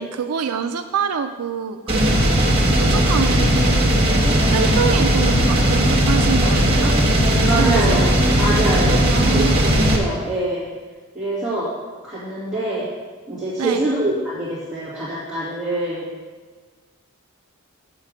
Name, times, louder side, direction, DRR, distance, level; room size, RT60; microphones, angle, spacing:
voice 1, 0.0-2.2 2.7-3.7 4.5-6.9 7.5-8.0 9.0-9.6 13.6-13.8, right 6 dB, 85° right, 7 dB, 0.4 m, -26 dB
sound 1, 1.9-10.0, equal, 25° right, 1.3 m, -17 dB
voice 2, 7.5-8.0 8.4-10.7 11.1-11.7 12.0-12.9 13.3-16.0, right 1 dB, 5° right, -12 dB, 2.5 m, -24 dB
7.3 x 7.0 x 6.5 m, 1.4 s
head